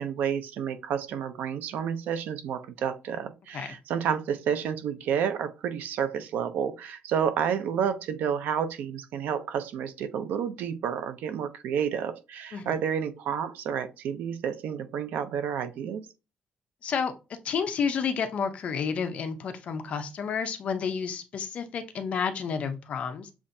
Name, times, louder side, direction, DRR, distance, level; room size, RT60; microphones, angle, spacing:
voice 1, 0.0-16.0, right 8 dB, 75° right, 0.5 m, -30 dB
voice 2, 17.4-23.3, left 6 dB, 45° left, 0.6 m, -30 dB
7.1 x 2.5 x 2.6 m
cardioid pair, 180°, 3 cm